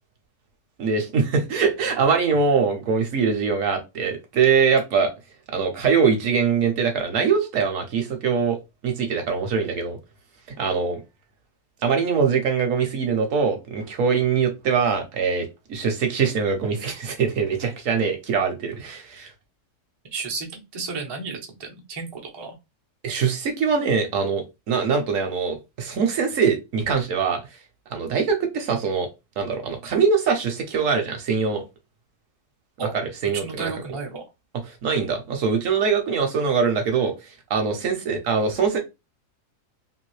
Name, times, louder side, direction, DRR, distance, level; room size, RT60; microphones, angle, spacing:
voice 1, 0.8-5.1 5.5-8.6 8.8-10.0 10.6-11.0 11.8-19.3 23.0-27.4 27.9-29.1 29.4-31.6 33.2-33.7 34.7-38.8, right 5 dB, 60° right, 1.0 m, -23 dB
voice 2, 20.1-22.5 32.8-34.2, right 4 dB, 40° right, 0.3 m, -33 dB
2.9 x 2.6 x 3.1 m
omnidirectional pair, 1.7 m